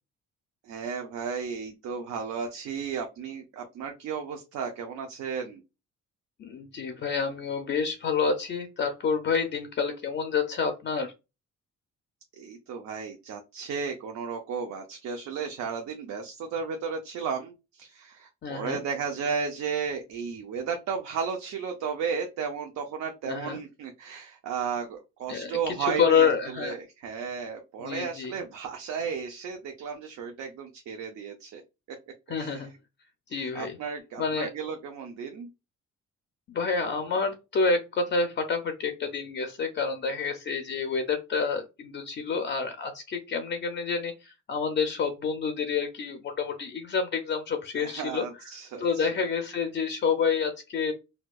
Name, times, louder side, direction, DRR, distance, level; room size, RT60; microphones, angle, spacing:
voice 1, 0.6-5.6 12.4-31.6 32.4-32.6 33.3-35.5 47.8-49.3, right 6 dB, 70° right, 4 dB, 0.6 m, -34 dB
voice 2, 6.4-11.1 18.4-18.8 23.3-23.6 25.3-26.8 27.8-28.4 32.3-32.7 33.3-33.8 34.2-34.5 36.5-48.2 48.8-50.9, left 5 dB, 40° left, 6 dB, 0.4 m, -28 dB
4.3 x 2.3 x 2.3 m, 0.26 s
cardioid pair, 170°, 29 cm